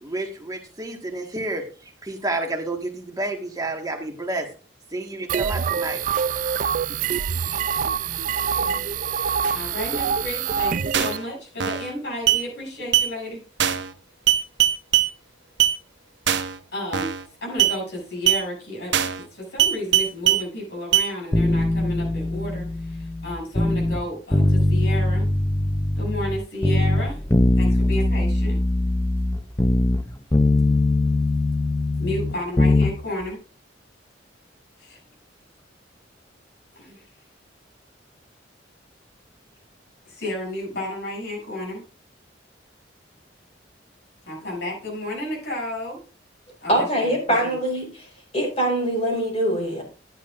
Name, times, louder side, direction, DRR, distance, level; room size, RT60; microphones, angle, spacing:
voice 1, 0.0-4.5 4.9-6.0, right 2 dB, 20° right, 3 dB, 1.6 m, -30 dB
sound 1, 5.3-11.2, right 7 dB, 45° right, 0.4 m, -25 dB
voice 2, 9.5-13.4 16.7-17.1 17.4-25.3 26.0-27.2 27.5-28.6 32.0-33.4 34.8-35.0 36.7-37.0 40.1-41.8 44.3-46.0 46.6-47.6, left 1 dB, 65° left, -3 dB, 7.2 m, -32 dB
sound 2, 10.9-11.2 11.6-11.9 12.3-12.4 12.9-13.1 13.6-13.9 14.3-15.1 15.6-15.8 16.3-16.6 16.9-17.2 17.6-17.8 18.3-18.4 18.9-19.2 19.6-20.4 20.9-21.1, right 11 dB, 70° right, 0.9 m, -20 dB
sound 3, 21.3-24.0 24.3-26.4 26.6-30.0 30.3-32.9 33.2-33.3, left 2 dB, 15° left, 0.6 m, -21 dB
voice 3, 46.7-47.9 48.3-49.8, right 1 dB, 35° left, -1 dB, 5.3 m, -23 dB
13.5 x 10.5 x 2.5 m, 0.35 s
head